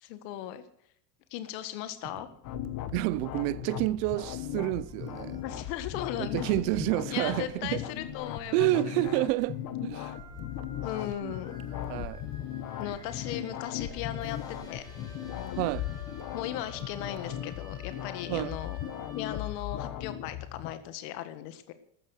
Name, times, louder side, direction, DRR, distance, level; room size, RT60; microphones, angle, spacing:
voice 1, 0.0-0.6 1.3-2.3 5.4-6.7 7.1-9.0 9.3-9.4 10.8-11.6 12.8-14.4 14.7-14.8 15.4-15.7 16.3-18.8 19.1-21.7, left 12 dB, 80° left, 1.8 m, -37 dB
sound 1, 2.0-17.5, right 9 dB, 30° right, 1.2 m, -54 dB
sound 2, 2.4-20.7, left 11 dB, 45° left, 1.5 m, -38 dB
voice 2, 2.9-5.4 6.2-7.8 8.5-10.1 11.2-11.3 11.9-12.3 15.6-15.9 18.3-18.6, right 18 dB, 80° right, 0.8 m, -29 dB
sound 3, 4.6-20.0, left 1 dB, 5° left, 4.9 m, -51 dB
14.5 x 13.5 x 6.5 m
cardioid pair, 165°, 48 cm